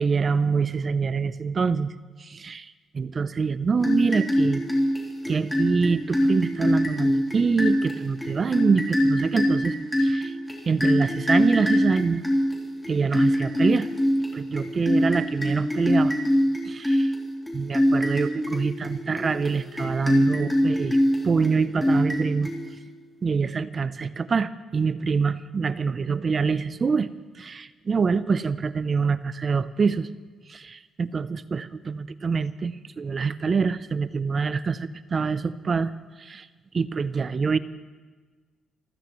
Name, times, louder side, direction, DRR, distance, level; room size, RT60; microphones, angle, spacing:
voice 1, 0.0-1.9 2.2-4.6 5.3-10.4 10.7-12.2 12.9-13.9 14.3-16.2 16.6-17.1 17.5-21.0 21.2-22.5 23.2-27.1 27.3-30.1 30.5-35.9 36.2-36.5 36.7-37.6, right 5 dB, 40° right, 14 dB, 0.6 m, -25 dB
sound 1, 3.8-23.0, equal, 10° left, 3.6 m, -24 dB
27.0 x 15.0 x 3.1 m, 1.4 s
cardioid pair, 90°, 0 cm